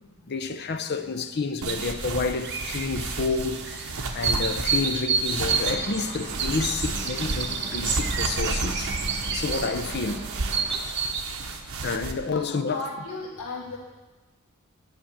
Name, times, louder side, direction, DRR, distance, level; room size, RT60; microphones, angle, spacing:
voice 1, 0.3-8.9 9.3-10.2 11.8-12.9, left 4 dB, 50° left, 0.7 m, -29 dB
sound 1, 1.6-12.1, right 3 dB, 80° right, 1.0 m, -33 dB
sound 2, 2.3-11.2, right 5 dB, 55° right, 0.9 m, -30 dB
sound 3, 5.4-10.7, right 1 dB, 35° right, 2.4 m, -40 dB
voice 2, 12.3-13.8, left 2 dB, 80° left, 1.8 m, -36 dB
10.5 x 6.0 x 8.6 m
head